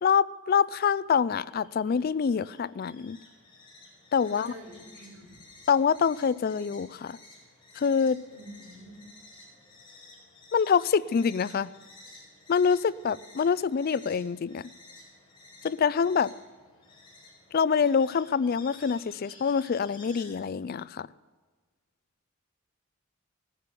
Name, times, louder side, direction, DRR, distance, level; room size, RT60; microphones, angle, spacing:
voice 1, 0.0-3.2 4.1-4.5 5.7-7.2 7.8-8.2 10.5-11.7 12.5-14.7 15.6-16.3 17.5-21.1, left 6 dB, 45° left, 19 dB, 0.3 m, -25 dB
sound 1, 0.6-20.4, left 2 dB, 25° left, 4.0 m, -53 dB
voice 2, 4.2-5.3 8.3-9.0 9.4-9.5, equal, 80° right, -1 dB, 5.0 m, -47 dB
15.5 x 10.0 x 6.9 m, 1.4 s
head